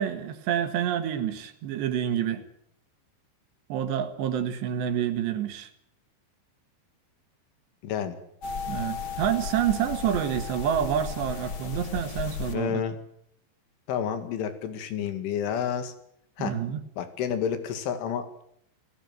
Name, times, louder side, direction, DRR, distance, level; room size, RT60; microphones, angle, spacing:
voice 1, 0.0-2.4 3.7-5.7 8.7-12.8 16.4-16.8, right 9 dB, 70° right, 8 dB, 3.8 m, -28 dB
voice 2, 7.8-8.2 12.5-13.0 13.9-15.9 16.4-16.6 17.0-18.4, left 8 dB, 85° left, 9 dB, 4.6 m, -30 dB
sound 1, 8.4-12.6, left 6 dB, 45° left, 1.6 m, -35 dB
29.5 x 18.0 x 7.9 m, 0.72 s
omnidirectional pair, 5.4 m